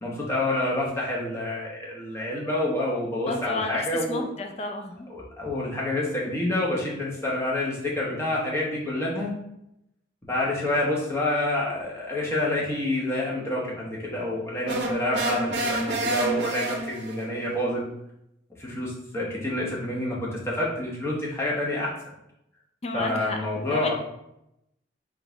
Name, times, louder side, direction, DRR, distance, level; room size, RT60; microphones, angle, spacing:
voice 1, 0.0-4.3 5.1-9.3 10.2-17.8 18.6-21.9 22.9-24.0, left 1 dB, 15° left, -5 dB, 0.9 m, -28 dB
voice 2, 3.3-5.1 22.8-23.4 23.7-24.0, left 2 dB, 35° left, 4 dB, 0.4 m, -32 dB
sound 1, 14.7-17.3, right 2 dB, 65° right, 0.6 m, -28 dB
3.8 x 2.4 x 3.8 m, 0.81 s
head